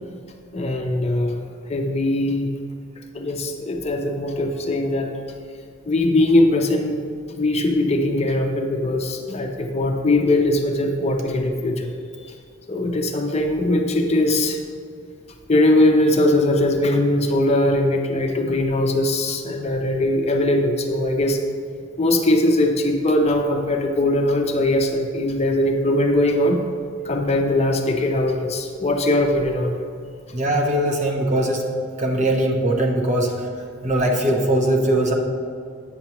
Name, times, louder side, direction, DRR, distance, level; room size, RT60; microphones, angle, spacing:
voice 1, 0.5-1.4 1.7-2.5 3.1-5.1 5.9-7.0 7.4-11.9 12.7-14.6 15.5-21.4 22.0-26.6 27.1-29.8, left 1 dB, 35° left, 3 dB, 0.6 m, -20 dB
voice 2, 30.3-31.7 32.0-33.3 33.8-35.1, right 1 dB, 40° right, 1 dB, 0.9 m, -20 dB
8.2 x 7.1 x 3.0 m, 2.3 s
head